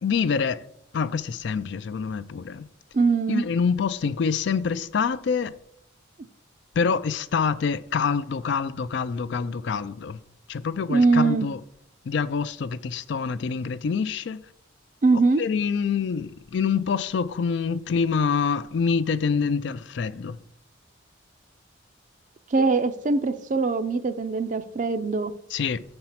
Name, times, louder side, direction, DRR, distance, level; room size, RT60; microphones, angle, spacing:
voice 1, 0.0-0.7 0.9-2.7 3.3-5.6 6.8-10.2 10.5-11.6 12.0-14.4 15.4-20.4 25.5-25.8, left 5 dB, 60° left, 0.4 m, -26 dB
voice 2, 2.9-3.4 10.9-11.5 15.0-15.4 22.5-25.3, right 4 dB, 40° right, 0.4 m, -22 dB
6.8 x 4.4 x 5.7 m
head